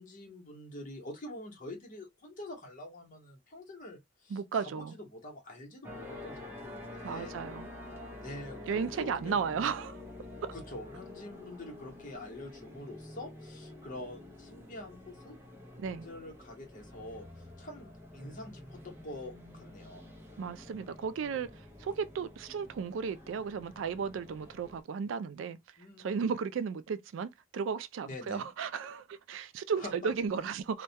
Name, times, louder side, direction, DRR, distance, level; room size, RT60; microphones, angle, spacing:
voice 1, 0.0-7.4 8.2-9.7 10.5-15.4 16.0-20.0 25.8-26.2 28.1-28.5 29.8-30.1, left 1 dB, 45° left, 0.9 m, -46 dB
voice 2, 4.3-4.9 7.0-7.7 8.7-10.0 10.4-10.5 15.8-16.1 20.4-25.6 26.0-30.8, right 6 dB, 75° right, 0.3 m, -34 dB
sound 1, 5.8-24.8, left 2 dB, 15° right, 0.6 m, -48 dB
2.2 x 2.1 x 2.7 m
head